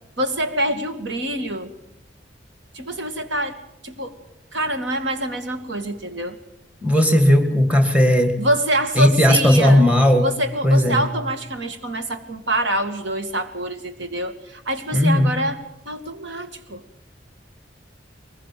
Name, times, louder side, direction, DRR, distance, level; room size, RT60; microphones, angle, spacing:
voice 1, 0.2-1.7 2.7-3.6 3.8-4.1 4.5-6.4 8.4-9.8 10.2-15.6 15.9-16.8, right 1 dB, 75° right, 7 dB, 2.4 m, -25 dB
voice 2, 6.8-8.4 9.0-10.3 10.6-11.0 14.9-15.3, left 1 dB, 10° right, 7 dB, 2.5 m, -16 dB
23.5 x 21.5 x 7.7 m, 0.80 s
head